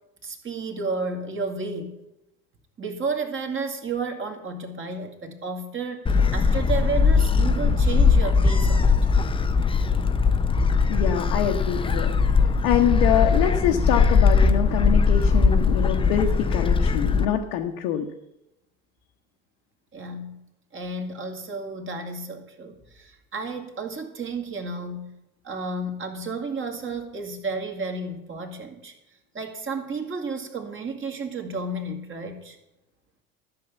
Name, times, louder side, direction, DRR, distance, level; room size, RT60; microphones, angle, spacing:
voice 1, 0.2-1.9 2.8-9.0 19.9-20.4 20.7-25.1 25.4-28.9 29.3-32.6, right 3 dB, 25° right, 4 dB, 2.3 m, -32 dB
Gull seagull, 6.1-17.3, left 5 dB, 10° left, 0.7 m, -20 dB
voice 2, 10.9-12.1 12.6-18.1, left 9 dB, 55° left, 1 dB, 1.2 m, -25 dB
13.5 x 6.8 x 7.1 m, 0.89 s
figure-of-eight pair, 65°, 44 cm